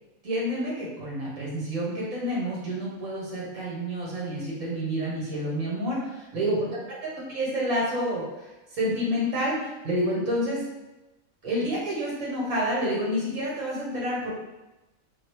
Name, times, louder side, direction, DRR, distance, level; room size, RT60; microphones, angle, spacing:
voice 1, 0.2-6.7 7.0-8.5 8.7-10.6 11.4-14.3, equal, 65° right, -6 dB, 1.7 m, -29 dB
4.0 x 2.9 x 3.1 m, 1.0 s
omnidirectional pair, 1.5 m